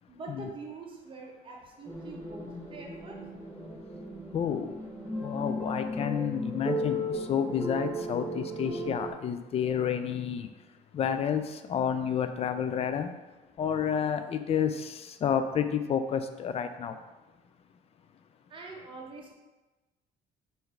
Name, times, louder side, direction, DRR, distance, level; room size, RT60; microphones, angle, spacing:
voice 1, 0.1-3.2 18.5-19.3, right 3 dB, 30° right, -1 dB, 0.9 m, -44 dB
sound 1, 1.9-9.1, equal, 15° left, 1.2 m, -35 dB
voice 2, 4.3-4.8 5.2-10.5 10.9-13.1 13.6-17.0, left 8 dB, 35° left, 9 dB, 0.4 m, -30 dB
3.8 x 2.7 x 4.4 m, 1.1 s
cardioid pair, 110°, 17 cm